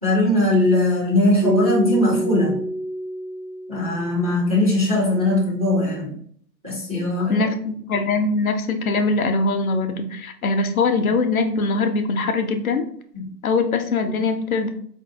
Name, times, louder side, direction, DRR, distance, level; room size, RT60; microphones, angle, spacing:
voice 1, 0.0-2.6 3.7-6.2 6.6-7.5 13.1-13.3, left 1 dB, 25° right, -5 dB, 0.3 m, -20 dB
Keyboard (musical), 1.4-4.3, right 1 dB, 80° right, 1.0 m, -27 dB
voice 2, 7.3-12.8 13.4-14.7, left 3 dB, 60° left, 7 dB, 0.5 m, -22 dB
4.0 x 2.6 x 2.3 m, 0.62 s
figure-of-eight pair, 120°, 50 cm